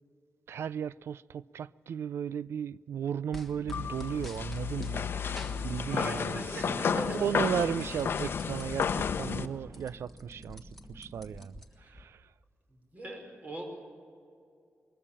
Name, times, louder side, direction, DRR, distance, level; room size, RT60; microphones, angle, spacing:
voice 1, 0.5-12.3, right 8 dB, 80° right, 0.4 m, -36 dB
sound 1, 3.3-5.0 5.4-6.5 6.8-8.9 9.3-9.4 9.6-12.0, left 1 dB, 5° left, 1.5 m, -49 dB
sound 2, 3.4-11.5, equal, 15° right, 1.7 m, -51 dB
sound 3, 3.7-9.5, left 6 dB, 60° left, 0.8 m, -32 dB
voice 2, 5.9-7.2 11.8-11.9 12.9-13.7, equal, 35° right, 5.2 m, -40 dB
22.0 x 14.0 x 8.7 m
wide cardioid pair, 115°, 4 cm